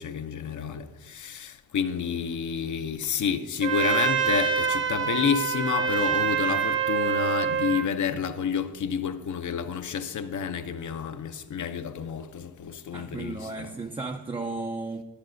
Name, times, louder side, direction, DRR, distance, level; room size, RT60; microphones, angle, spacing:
voice 1, 0.0-13.7, left 7 dB, 50° left, 0.6 m, -29 dB
Trumpet, 3.6-7.9, right 7 dB, 30° right, 0.8 m, -26 dB
voice 2, 12.9-15.0, right 3 dB, 15° right, 0.4 m, -34 dB
10.0 x 9.8 x 2.6 m
cardioid pair, 65°, 38 cm